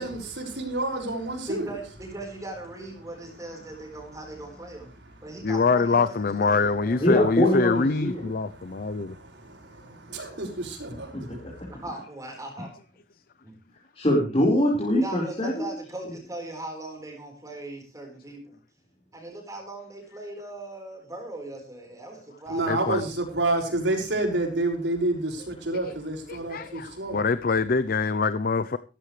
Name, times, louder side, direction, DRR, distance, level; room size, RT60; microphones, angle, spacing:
voice 1, 0.0-1.7 8.4-11.7 22.5-27.2, right 2 dB, 75° right, 6.0 m, -29 dB
voice 2, 1.5-4.9 5.2-7.1 11.7-12.7 13.4-13.6 15.0-18.6 19.1-23.0, right 2 dB, 20° right, 4.5 m, -39 dB
voice 3, 5.4-9.2 22.7-23.0 25.8-25.9 26.3-28.8, left 4 dB, 55° left, 0.6 m, -24 dB
voice 4, 7.0-8.2 11.3-11.4 14.0-15.5 26.6-26.7, left 1 dB, 35° left, 4.7 m, -23 dB
16.5 x 14.5 x 3.3 m
head